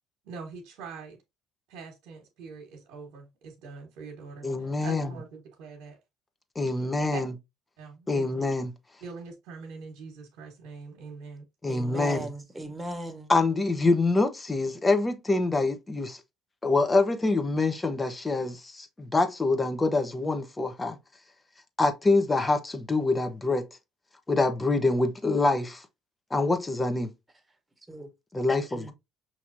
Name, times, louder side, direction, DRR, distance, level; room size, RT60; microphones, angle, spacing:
voice 1, 0.2-1.2 1.7-4.5 4.8-6.0 7.1-7.2 7.8-8.2 9.0-11.5, right 5 dB, 70° right, 1.2 m, -43 dB
voice 2, 4.4-5.1 6.5-7.3 8.1-8.7 11.6-12.3 13.3-16.2 16.6-21.0 21.8-23.7 24.3-25.8 26.3-27.1 28.3-28.9, left 3 dB, 20° left, 1.0 m, -25 dB
voice 3, 11.7-13.3 27.9-28.1 28.7-28.9, right 2 dB, 15° right, 1.4 m, -38 dB
5.8 x 3.0 x 2.6 m
hypercardioid pair, 65°, 0 cm